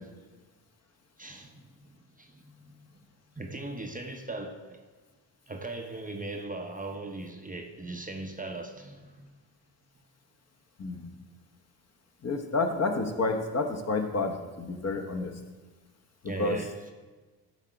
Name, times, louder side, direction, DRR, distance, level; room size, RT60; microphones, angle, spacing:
voice 1, 1.2-3.1 3.4-4.8 5.5-9.3 16.3-16.9, right 2 dB, 15° right, 3 dB, 0.7 m, -39 dB
voice 2, 12.2-15.3 16.4-16.6, left 3 dB, 30° left, 5 dB, 1.0 m, -29 dB
10.5 x 3.8 x 4.5 m, 1.3 s
hypercardioid pair, 55°, 49 cm